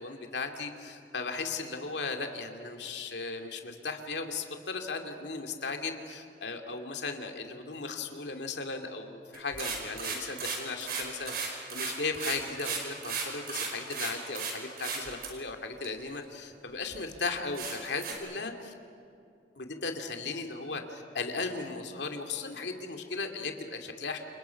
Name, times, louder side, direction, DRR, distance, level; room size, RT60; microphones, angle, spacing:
voice 1, 0.0-18.7 19.6-24.2, left 4 dB, 80° left, 4 dB, 2.5 m, -36 dB
sound 1, 9.3-14.5 14.8-15.3 15.8-15.9 16.5-16.6 16.9-17.0 17.5-18.1, right 5 dB, 60° right, 5.2 m, -35 dB
29.0 x 28.5 x 5.8 m, 2.5 s
head